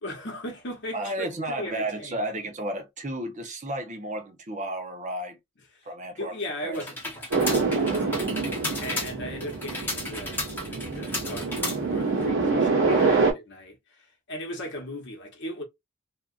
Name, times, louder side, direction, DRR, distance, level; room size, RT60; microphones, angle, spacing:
voice 1, 0.0-2.2 5.7-5.9 6.2-8.4 8.8-15.6, left 1 dB, 55° left, 1.0 m, -38 dB
voice 2, 0.9-5.4 5.8-6.4 6.6-6.8 7.7-8.1 12.8-13.0, right 1 dB, 35° right, 0.8 m, -33 dB
sound 1, 6.7-12.2, left 2 dB, 10° left, 1.0 m, -34 dB
sound 2, 7.3-13.3, right 4 dB, 70° right, 1.2 m, -26 dB
2.8 x 2.4 x 2.4 m
head